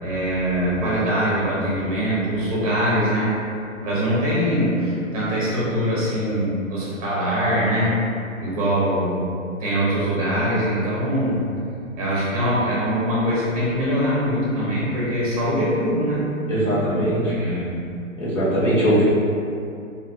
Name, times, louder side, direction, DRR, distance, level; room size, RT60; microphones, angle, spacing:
voice 1, 0.0-3.3 3.8-7.9 8.4-9.2 9.6-11.4 12.0-16.3 17.3-17.8, equal, 25° right, -7 dB, 0.6 m, -22 dB
voice 2, 16.5-17.6 18.2-19.0, equal, 65° left, -9 dB, 1.1 m, -21 dB
2.6 x 2.4 x 2.3 m, 2.5 s
figure-of-eight pair, 125°, 41 cm